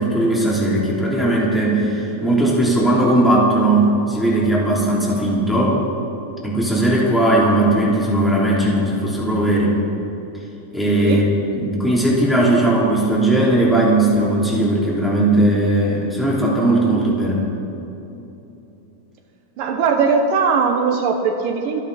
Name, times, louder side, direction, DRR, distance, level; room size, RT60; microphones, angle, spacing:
voice 1, 0.0-5.8 6.4-9.7 10.7-17.4, right 1 dB, ahead, -5 dB, 2.3 m, -18 dB
voice 2, 19.6-21.8, right 5 dB, 75° right, 4 dB, 2.2 m, -19 dB
25.0 x 10.0 x 4.2 m, 3.0 s
omnidirectional pair, 4.5 m